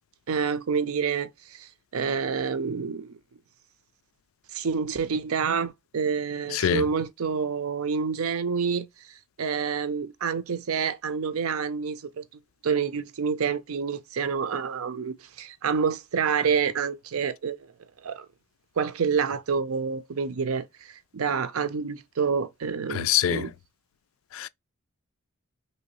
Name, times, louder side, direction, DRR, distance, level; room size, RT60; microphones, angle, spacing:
voice 1, 0.3-3.2 4.5-8.9 9.4-12.2 12.6-17.6 18.0-18.3 18.8-23.5, right 6 dB, 90° right, 0.5 m, -28 dB
voice 2, 6.5-6.9 22.9-23.5 24.3-24.5, left 10 dB, 75° left, 0.3 m, -25 dB
3.0 x 2.7 x 3.0 m
head